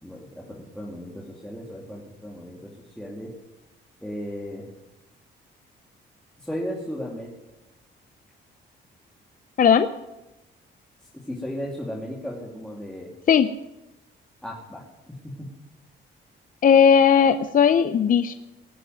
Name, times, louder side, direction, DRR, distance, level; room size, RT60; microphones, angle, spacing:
voice 1, 0.0-2.7 3.0-3.3 4.0-4.6 6.4-7.3 11.1-13.1 14.4-14.8 15.1-15.5, equal, 5° left, -3 dB, 2.6 m, -35 dB
voice 2, 9.6-9.9 13.3-13.5 16.6-18.3, left 7 dB, 45° left, 11 dB, 0.6 m, -17 dB
18.0 x 6.6 x 9.3 m, 1.0 s
cardioid pair, 90°, 20 cm